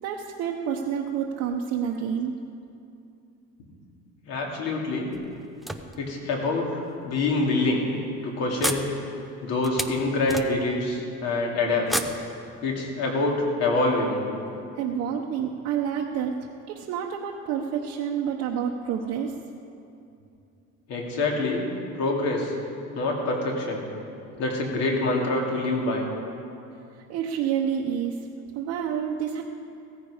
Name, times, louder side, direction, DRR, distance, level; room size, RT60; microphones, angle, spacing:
voice 1, 0.0-2.3 14.7-19.4 26.9-28.2 28.5-29.4, right 8 dB, 65° right, 0 dB, 0.9 m, -29 dB
voice 2, 4.3-5.1 6.0-7.8 8.2-8.9 9.4-11.9 12.6-14.2 20.9-21.7 21.9-22.5 22.9-23.8 24.4-26.1, left 2 dB, 60° left, -1 dB, 2.7 m, -26 dB
sound 1, 5.1-6.4 7.2-7.3 7.6-7.8 8.6-10.9 11.8-13.0, right 1 dB, ahead, 0.4 m, -33 dB
16.5 x 14.0 x 5.0 m, 2.6 s
cardioid pair, 175°, 29 cm